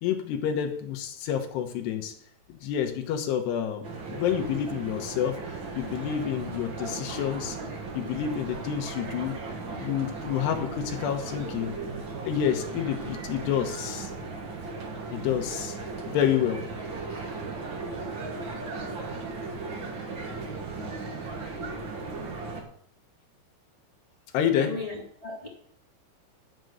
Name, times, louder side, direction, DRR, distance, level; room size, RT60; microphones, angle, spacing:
voice 1, 0.0-2.1 2.5-7.6 7.9-9.3 9.7-11.7 12.3-14.1 15.1-15.8 16.1-16.6 24.3-24.7, left 9 dB, 75° left, 4 dB, 3.1 m, -28 dB
sound 1, 3.8-22.6, right 3 dB, 65° right, 1.2 m, -36 dB
voice 2, 24.6-25.5, left 2 dB, 30° left, -3 dB, 0.6 m, -37 dB
11.0 x 5.3 x 8.0 m, 0.63 s
omnidirectional pair, 5.1 m